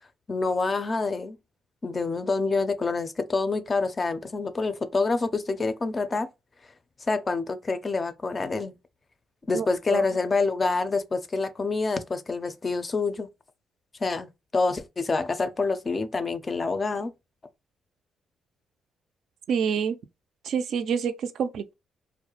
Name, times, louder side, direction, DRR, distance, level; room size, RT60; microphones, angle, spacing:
voice 1, 0.3-1.4 1.8-6.3 7.1-8.7 9.5-13.3 14.0-17.1, left 3 dB, 30° left, 0.4 m, -27 dB
voice 2, 9.5-10.0 19.5-20.0 20.4-21.7, right 7 dB, 70° right, 0.3 m, -27 dB
2.3 x 2.0 x 2.9 m
cardioid pair, 90°, 0 cm